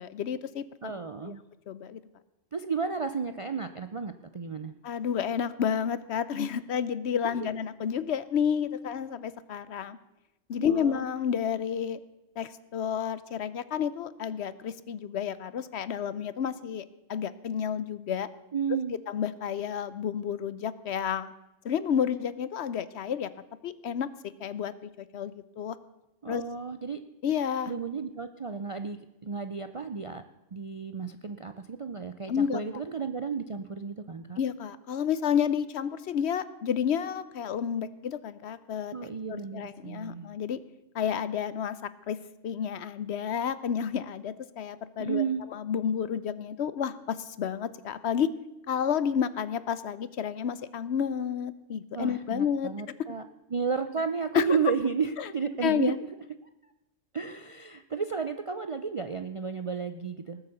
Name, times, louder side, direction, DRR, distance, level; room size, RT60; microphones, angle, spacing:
voice 1, 0.0-0.9 1.2-1.3 1.7-2.0 4.8-10.0 10.5-12.0 12.4-18.3 19.1-21.3 21.6-23.3 23.6-24.1 24.4-25.8 26.3-26.4 27.2-27.7 32.3-32.6 34.4-38.9 39.3-40.6 40.9-41.8 42.1-42.2 42.4-48.3 48.7-52.7 54.3-54.4 55.2-55.3 55.6-55.9, left 8 dB, 65° left, 16 dB, 0.9 m, -30 dB
voice 2, 0.8-1.4 2.5-4.7 10.6-11.0 18.5-19.0 26.2-27.0 27.7-30.2 30.5-34.4 38.9-40.3 45.0-45.5 51.9-56.1 57.1-60.4, right 5 dB, 45° right, 9 dB, 0.4 m, -33 dB
18.5 x 8.1 x 6.7 m, 0.96 s
omnidirectional pair, 1.3 m